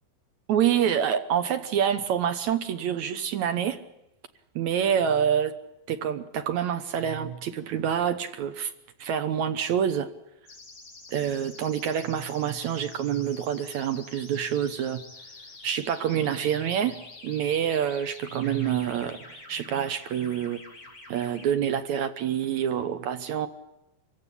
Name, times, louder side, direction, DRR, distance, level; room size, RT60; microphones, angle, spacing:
voice 1, 0.5-3.8 4.6-5.6 5.9-8.7 9.0-10.1 11.1-15.0 15.6-20.6 21.1-23.5, right 9 dB, 65° right, 9 dB, 2.0 m, -27 dB
sound 1, 10.5-21.5, left 3 dB, 35° left, 4.8 m, -47 dB
25.0 x 15.5 x 9.9 m, 0.89 s
omnidirectional pair, 4.2 m